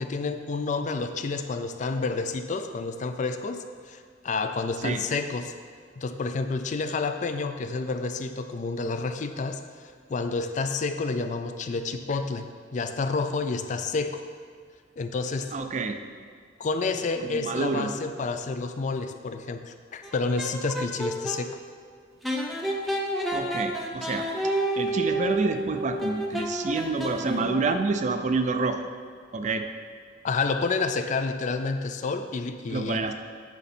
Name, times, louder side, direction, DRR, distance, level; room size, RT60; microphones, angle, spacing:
voice 1, 0.0-5.5 6.0-9.6 10.1-14.2 15.0-15.5 16.6-21.6 30.2-33.1, left 4 dB, 40° left, 8 dB, 0.4 m, -29 dB
voice 2, 15.5-16.0 17.2-17.9 23.3-28.8 29.3-29.7 32.7-33.1, right 3 dB, 40° right, 7 dB, 0.4 m, -28 dB
sound 1, 20.0-21.4 22.2-27.7, right 1 dB, ahead, 0.6 m, -30 dB
8.1 x 5.2 x 4.3 m, 2.1 s
head